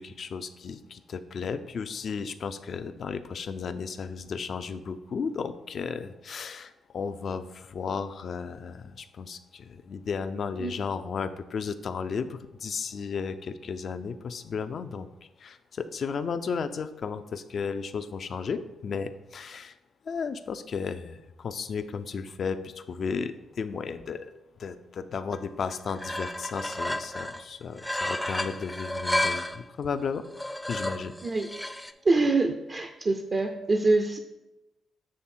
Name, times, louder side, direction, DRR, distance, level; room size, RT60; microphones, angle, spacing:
voice 1, 0.0-15.1 15.4-19.7 20.1-24.3 24.6-30.2 30.7-31.1, left 5 dB, 60° left, 10 dB, 0.4 m, -34 dB
sound 1, 25.3-25.4 25.7-27.4 27.8-29.6 30.2-31.9, left 1 dB, 10° left, 0.5 m, -32 dB
voice 2, 32.0-34.2, right 3 dB, 45° right, 5 dB, 0.6 m, -25 dB
7.6 x 3.2 x 4.4 m, 0.98 s
supercardioid pair, 50°, 0 cm